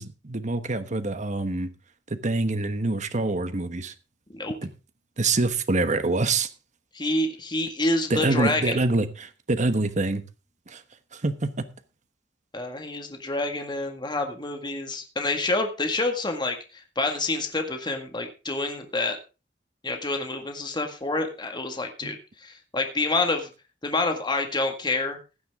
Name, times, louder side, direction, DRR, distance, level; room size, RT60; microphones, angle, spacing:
voice 1, 0.0-1.7 2.1-3.9 4.6-4.7 5.2-6.5 8.1-10.2 10.7-10.8 11.1-11.5 22.0-22.1, right 2 dB, 45° right, 1.2 m, -25 dB
voice 2, 6.9-8.8 12.5-19.2 19.8-23.5 23.8-25.2, left 2 dB, 25° left, 1.8 m, -28 dB
16.0 x 10.5 x 3.6 m
head